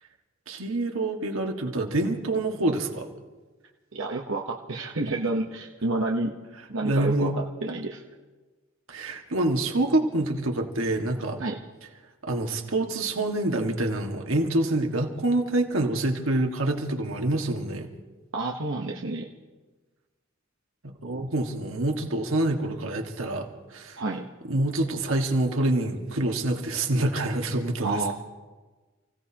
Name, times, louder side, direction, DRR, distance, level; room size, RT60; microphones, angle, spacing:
voice 1, 0.5-3.1 6.8-7.4 8.9-11.4 12.2-17.9 21.0-24.0 24.5-28.1, right 2 dB, 90° right, 3 dB, 1.8 m, -26 dB
voice 2, 3.9-6.3 6.7-8.0 11.4-11.6 18.3-19.3 21.0-21.3 24.0-24.3 27.8-28.1, right 2 dB, 70° right, 0 dB, 1.1 m, -29 dB
29.5 x 16.5 x 2.9 m, 1.3 s
head